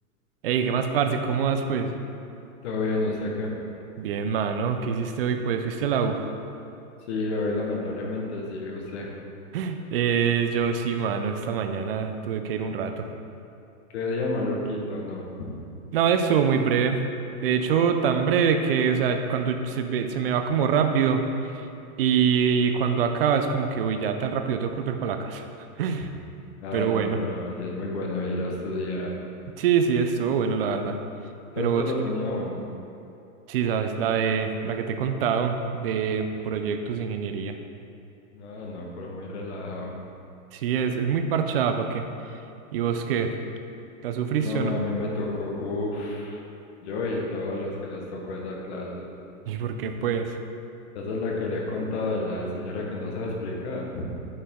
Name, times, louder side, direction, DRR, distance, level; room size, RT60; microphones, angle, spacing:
voice 1, 0.4-1.9 4.0-6.3 9.5-13.1 15.9-17.0 17.4-21.2 22.0-25.4 25.8-26.1 26.7-27.2 29.6-31.0 31.6-31.8 33.5-37.6 40.5-42.1 42.7-43.3 44.0-44.7 49.5-50.4, right 7 dB, 45° right, 6 dB, 0.5 m, -25 dB
voice 2, 2.6-3.6 7.1-9.1 13.9-15.5 26.6-29.2 31.5-32.6 38.3-39.9 44.4-46.4 46.8-49.0 50.9-54.0, left 2 dB, 50° left, -1 dB, 1.2 m, -30 dB
8.5 x 4.8 x 3.7 m, 2.8 s
supercardioid pair, 165°, 43 cm